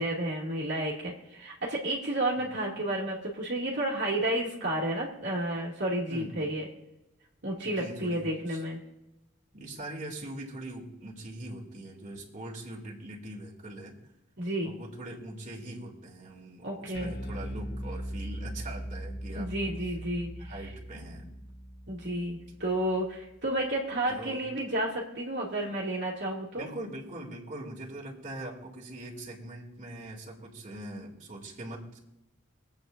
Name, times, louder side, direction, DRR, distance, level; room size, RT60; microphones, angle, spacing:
voice 1, 0.0-6.7 7.4-8.8 14.4-14.7 16.6-17.1 19.3-20.7 21.9-26.6, right 1 dB, 60° right, -3 dB, 2.5 m, -31 dB
voice 2, 6.1-6.6 7.6-8.6 9.5-14.0 14.6-19.5 20.4-21.3 24.1-24.4 26.6-32.0, right 1 dB, 40° right, -2 dB, 2.7 m, -42 dB
Bass guitar, 16.9-23.4, equal, 55° left, 1.2 m, -40 dB
25.0 x 8.8 x 2.6 m, 0.94 s
head